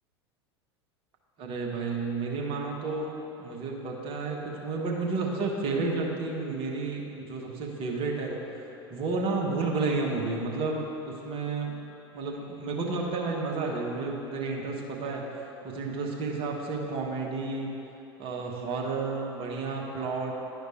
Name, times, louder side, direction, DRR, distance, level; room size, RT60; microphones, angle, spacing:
voice 1, 1.4-3.1 3.4-8.5 8.9-11.8 12.1-17.7 18.2-20.3, right 3 dB, 40° right, -1 dB, 1.3 m, -31 dB
11.0 x 5.1 x 4.5 m, 3.0 s
figure-of-eight pair, 80°, 14 cm